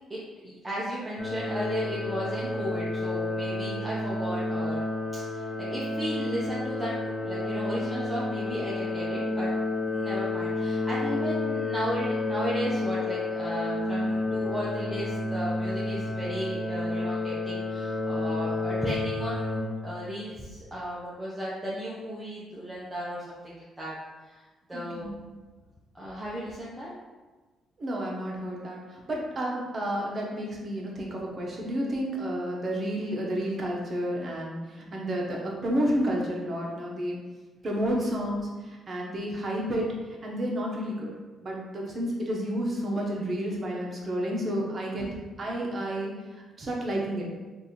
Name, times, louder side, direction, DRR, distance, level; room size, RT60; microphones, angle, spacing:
voice 1, 0.1-4.9 5.1-6.9 7.2-9.5 9.9-24.0 24.2-24.4 24.7-25.1 25.9-26.9 45.0-45.2, equal, 15° right, -8 dB, 0.8 m, -35 dB
sound 1, 1.2-19.6, left 2 dB, 30° left, 1.1 m, -30 dB
voice 2, 24.7-25.1 27.8-37.2 37.6-41.1 41.4-45.1 45.4-46.1 46.6-47.3, equal, 40° right, -2 dB, 1.0 m, -31 dB
3.3 x 2.6 x 4.3 m, 1.3 s
cardioid pair, 90°, 0 cm